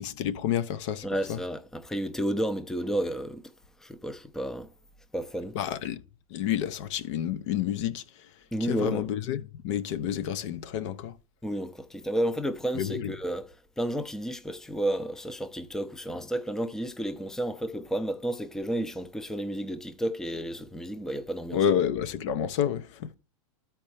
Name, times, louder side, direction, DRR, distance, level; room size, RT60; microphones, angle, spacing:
voice 1, 0.0-1.4 5.5-6.0 6.3-8.3 8.6-11.2 12.7-13.1 21.5-23.1, left 9 dB, 60° left, 0.6 m, -29 dB
voice 2, 1.0-3.5 3.8-4.7 5.1-5.5 8.5-9.1 11.4-13.5 13.8-21.7, right 1 dB, ahead, 0.5 m, -31 dB
13.0 x 4.4 x 3.2 m
hypercardioid pair, 120°, 18 cm